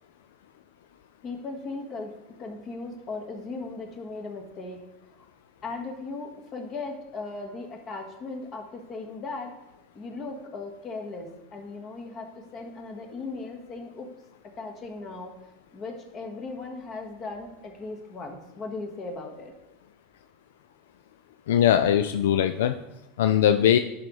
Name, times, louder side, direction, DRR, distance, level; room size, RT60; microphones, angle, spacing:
voice 1, 1.2-4.8 5.2-5.3 5.6-9.5 9.9-14.1 14.4-15.4 15.7-19.5, left 3 dB, 40° left, 2 dB, 1.5 m, -37 dB
voice 2, 21.5-22.8 23.2-23.8, left 10 dB, 85° left, 9 dB, 0.3 m, -20 dB
10.5 x 4.1 x 3.2 m, 0.93 s
hypercardioid pair, 105°, 0 cm